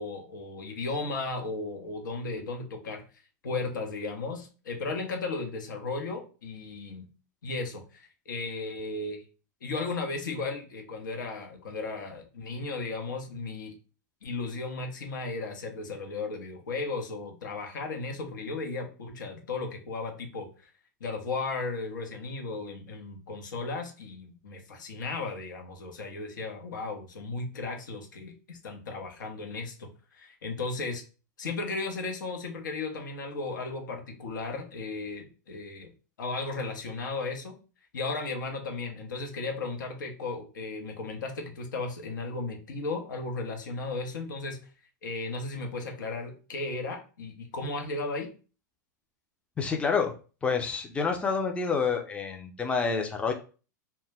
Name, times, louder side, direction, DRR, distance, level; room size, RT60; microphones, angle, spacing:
voice 1, 0.0-3.0 3.4-7.1 7.4-9.2 9.6-13.7 14.2-20.7 21.0-31.0 31.4-35.9 36.2-37.5 37.9-44.6 45.0-48.3, left 3 dB, 80° left, 3 dB, 0.8 m, -35 dB
voice 2, 49.6-50.1 50.4-53.3, left 5 dB, 10° left, 3 dB, 0.4 m, -28 dB
2.2 x 2.1 x 3.3 m, 0.35 s
hypercardioid pair, 105°, 10 cm